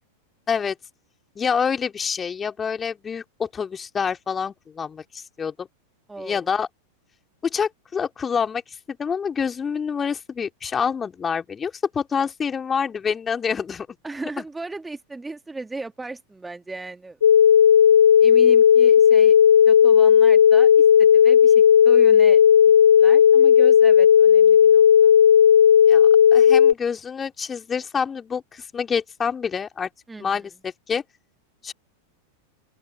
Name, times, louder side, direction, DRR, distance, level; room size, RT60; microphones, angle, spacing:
voice 1, 1.3-5.7 6.2-6.7 7.4-8.6 8.9-13.9 14.4-14.5 25.9-29.9 30.2-31.0 31.6-31.7, left 6 dB, 20° left, 3.4 m, -27 dB
voice 2, 6.1-6.5 14.0-17.2 18.2-22.4 23.0-25.1 30.1-30.5, right 3 dB, 10° right, 1.9 m, -36 dB
sound 1, 17.2-26.7, left 8 dB, 65° left, 0.4 m, -13 dB
open air
figure-of-eight pair, 90°, 0 cm